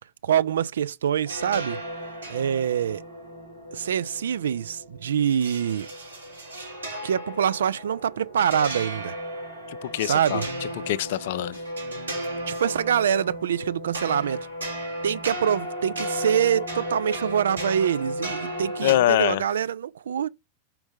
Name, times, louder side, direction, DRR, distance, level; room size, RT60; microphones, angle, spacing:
voice 1, 0.2-1.8 2.3-3.0 3.7-5.9 7.0-9.1 10.0-10.4 12.5-14.4 15.0-20.3, right 9 dB, 65° right, 0.3 m, -25 dB
sound 1, 1.2-18.9, equal, 80° right, 3.3 m, -34 dB
voice 2, 9.7-10.5 10.9-11.6 18.8-19.4, left 14 dB, 55° left, 0.4 m, -24 dB
5.3 x 4.5 x 5.1 m
figure-of-eight pair, 90°, 0 cm